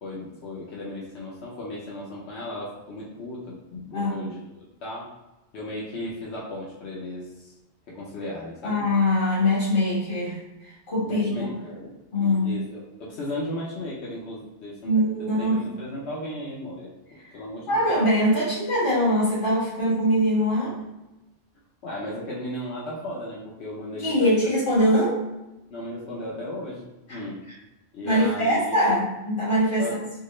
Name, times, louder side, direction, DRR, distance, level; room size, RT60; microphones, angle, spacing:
voice 1, 0.0-5.1 5.5-7.5 7.9-8.8 11.1-11.9 12.2-14.9 15.4-16.9 17.3-17.9 21.8-24.5 25.7-27.4 27.9-28.8 29.8-30.0, left 1 dB, 85° left, -5 dB, 1.1 m, -35 dB
voice 2, 8.6-11.5 12.1-12.5 14.8-15.6 17.7-20.8 24.0-25.2 27.1-27.2 28.0-29.9, equal, 50° left, -8 dB, 1.7 m, -22 dB
4.6 x 2.0 x 3.1 m, 1.0 s
omnidirectional pair, 1.1 m